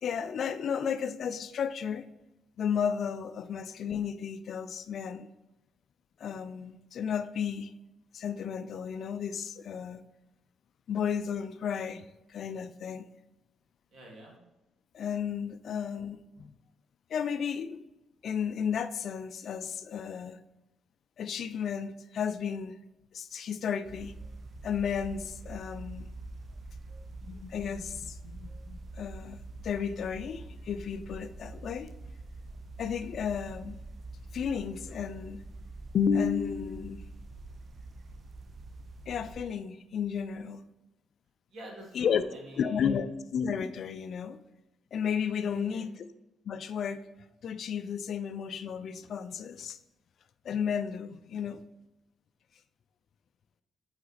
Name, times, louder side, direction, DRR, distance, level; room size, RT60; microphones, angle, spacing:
voice 1, 0.0-2.1 2.6-5.3 6.2-7.7 8.1-10.1 10.9-12.0 12.3-13.1 14.9-16.5 17.1-17.8 18.2-20.4 21.2-22.8 23.1-24.1 24.6-26.1 27.2-29.4 29.6-31.9 32.8-33.8 34.3-35.4 35.9-37.1 39.1-40.6 42.0-42.2 42.6-44.4 44.9-45.9 46.5-47.0 47.4-49.8 50.4-51.6, left 7 dB, 60° left, 12 dB, 0.4 m, -33 dB
voice 2, 13.9-14.4 41.5-43.0 45.5-45.8, right 1 dB, 65° right, -1 dB, 2.0 m, -47 dB
sound 1, 23.8-39.4, right 2 dB, 45° right, 0.5 m, -45 dB
5.6 x 4.2 x 4.0 m, 0.95 s
cardioid pair, 90°, 0 cm